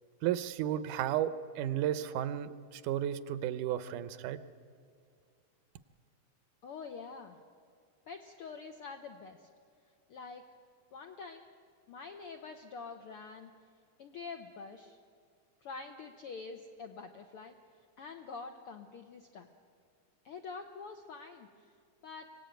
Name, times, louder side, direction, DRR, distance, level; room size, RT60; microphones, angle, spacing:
voice 1, 0.2-4.4, right 11 dB, 75° right, 13 dB, 2.1 m, -33 dB
voice 2, 6.6-7.4 8.1-9.5 10.1-10.5 10.9-11.4 11.9-13.5 14.0-15.0 15.6-17.6 18.0-19.5 20.2-21.5 22.0-22.3, left 4 dB, 75° left, 5 dB, 1.3 m, -46 dB
25.0 x 18.0 x 9.0 m, 2.2 s
omnidirectional pair, 3.8 m